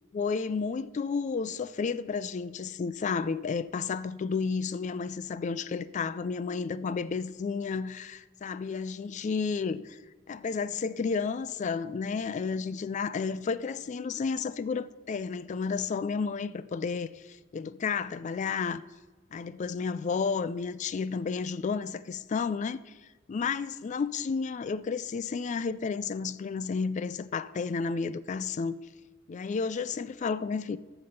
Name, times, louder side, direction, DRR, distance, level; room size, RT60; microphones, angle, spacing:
voice 1, 0.1-10.0 10.3-18.8 19.3-22.9 23.3-28.8 29.3-30.8, left 5 dB, 35° left, 0.3 m, -32 dB
14.0 x 6.0 x 5.2 m
head